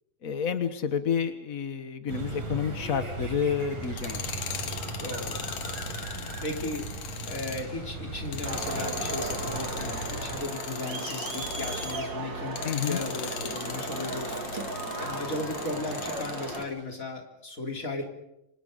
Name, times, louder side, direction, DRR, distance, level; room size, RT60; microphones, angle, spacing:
voice 1, 0.2-4.6 12.6-13.0, left 7 dB, 70° left, 9 dB, 0.8 m, -30 dB
sound 1, 2.1-10.4, right 3 dB, 70° right, 6.5 m, -37 dB
Tools, 3.8-12.0 12.5-16.7, left 7 dB, 55° left, 2.6 m, -39 dB
voice 2, 5.0-5.5 5.8-6.1 6.4-6.9 7.2-14.4 15.0-18.1, left 2 dB, 25° left, 2 dB, 3.7 m, -36 dB
Crowd, 8.4-16.6, right 3 dB, 35° right, 3.1 m, -35 dB
29.5 x 25.5 x 5.2 m, 0.85 s
omnidirectional pair, 3.7 m